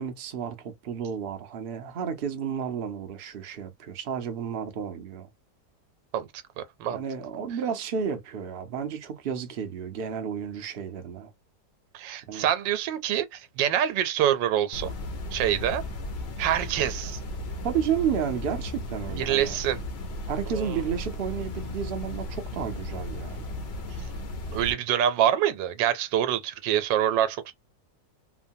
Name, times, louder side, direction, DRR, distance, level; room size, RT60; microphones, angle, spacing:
voice 1, 0.0-5.3 6.9-11.3 12.3-12.5 17.6-19.6 20.3-23.6, right 7 dB, 65° right, 0.5 m, -32 dB
voice 2, 6.6-7.0 11.9-14.9 15.3-15.8 16.4-17.2 19.1-19.8 20.5-20.8 24.5-27.5, right 10 dB, 85° right, 1.3 m, -26 dB
sound 1, 14.7-24.7, left 1 dB, 75° left, 0.5 m, -35 dB
3.0 x 2.2 x 2.6 m
omnidirectional pair, 1.9 m